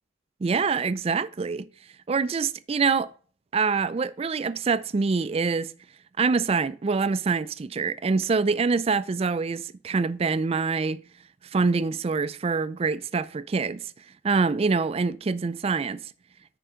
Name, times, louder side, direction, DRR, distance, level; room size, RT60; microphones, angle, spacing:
voice 1, 0.4-1.6 2.1-3.1 3.5-5.7 6.2-11.0 11.5-13.9 14.2-16.0, right 4 dB, 30° right, 0.3 m, -25 dB
10.0 x 4.6 x 3.8 m
head